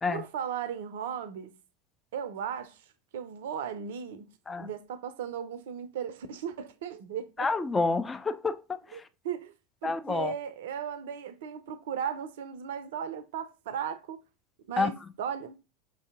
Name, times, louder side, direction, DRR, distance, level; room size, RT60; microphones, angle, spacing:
voice 1, 0.1-1.5 2.1-2.8 3.1-4.3 4.6-7.5 8.9-9.5 9.8-14.2 14.7-15.6, right 8 dB, 60° right, 0.3 m, -36 dB
voice 2, 7.4-9.0 9.8-10.3 14.8-14.9, left 4 dB, 15° left, 0.3 m, -29 dB
5.2 x 2.6 x 2.4 m
figure-of-eight pair, 80°, 0 cm